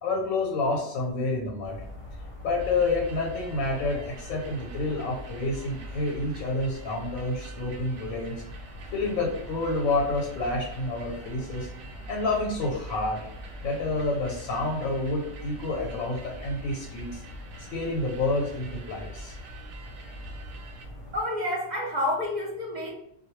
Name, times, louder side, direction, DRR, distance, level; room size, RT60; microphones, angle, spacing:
voice 1, 0.0-1.8 2.4-8.4 8.9-11.7 12.1-13.3 13.6-17.2 17.7-19.3, left 2 dB, 85° left, -1 dB, 1.1 m, -29 dB
sound 1, 1.6-21.2, left 1 dB, 55° left, 0.8 m, -42 dB
sound 2, 2.6-20.9, right 4 dB, 85° right, 1.0 m, -49 dB
voice 2, 21.1-22.9, left 1 dB, 60° right, -2 dB, 0.4 m, -29 dB
2.3 x 2.1 x 3.0 m, 0.75 s
omnidirectional pair, 1.4 m